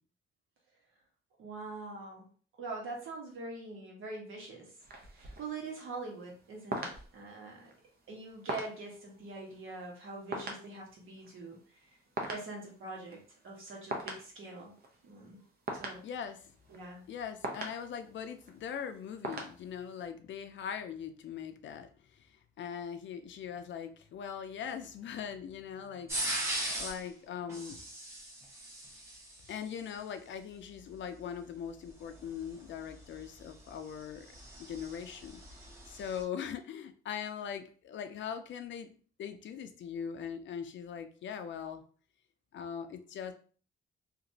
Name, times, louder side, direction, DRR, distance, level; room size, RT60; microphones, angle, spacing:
voice 1, 1.4-2.3 2.6-4.7 5.1-7.7 8.1-12.0 12.3-14.7 15.0-15.4 15.7-16.0 16.7-17.0, right 3 dB, 75° right, -1 dB, 1.2 m, -44 dB
sound 1, 4.8-20.0, right 2 dB, 50° right, 0.7 m, -43 dB
voice 2, 16.0-16.4 17.1-21.9 22.2-22.3 22.6-27.8 29.5-34.3 34.7-35.4 35.9-41.8 42.5-43.3, left 8 dB, 65° left, 8 dB, 0.5 m, -41 dB
sound 2, 26.1-27.0 27.5-29.6 32.1-36.2, right 1 dB, 15° right, 1.0 m, -39 dB
2.9 x 2.5 x 2.6 m, 0.42 s
cardioid pair, 115°, 21 cm